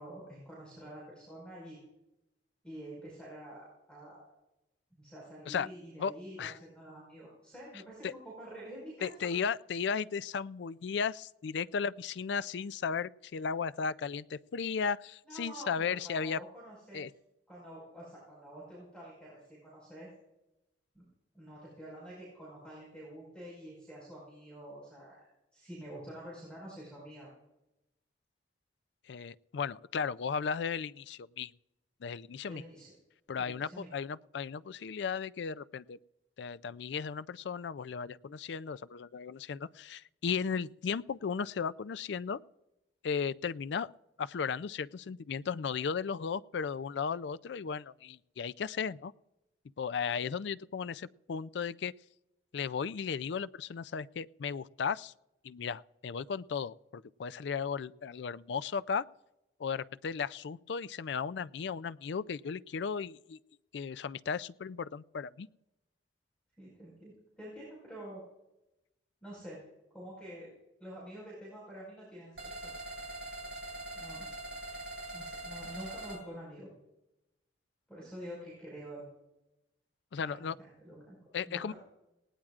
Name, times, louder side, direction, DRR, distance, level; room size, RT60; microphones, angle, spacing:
voice 1, 0.0-1.8 2.6-4.3 4.9-9.1 15.2-17.0 17.5-20.1 20.9-21.0 21.3-25.3 25.5-27.3 32.4-32.9 33.4-33.9 66.6-68.2 69.2-69.6 69.9-70.5 70.8-72.7 73.9-74.3 75.1-76.7 77.9-79.1 80.2-81.2 81.5-81.7, right 1 dB, 5° left, -6 dB, 5.0 m, -47 dB
voice 2, 9.0-16.4 16.9-17.1 29.1-31.5 32.0-32.6 33.3-36.0 36.4-42.4 43.0-43.9 44.2-49.1 49.8-51.9 52.5-55.1 55.4-59.0 59.6-63.4 63.7-65.5 80.1-80.6 81.3-81.7, left 6 dB, 70° left, 16 dB, 0.4 m, -35 dB
sound 1, 72.4-76.2, right 1 dB, 80° right, 4.6 m, -42 dB
19.0 x 17.5 x 2.5 m, 0.92 s
head